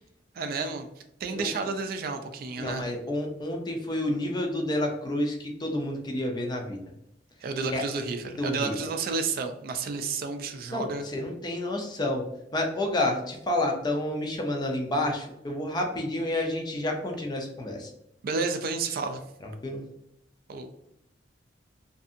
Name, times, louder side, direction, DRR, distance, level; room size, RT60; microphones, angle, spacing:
voice 1, 0.3-0.9 1.2-2.9 7.4-11.0 18.2-19.2 20.5-20.7, right 4 dB, 50° right, 7 dB, 0.3 m, -31 dB
voice 2, 2.6-6.8 7.7-7.8 8.4-8.7 10.7-10.9 11.1-12.2 12.5-17.9 19.6-19.8, left 1 dB, 25° left, 2 dB, 0.4 m, -29 dB
2.6 x 2.5 x 2.5 m, 0.81 s
head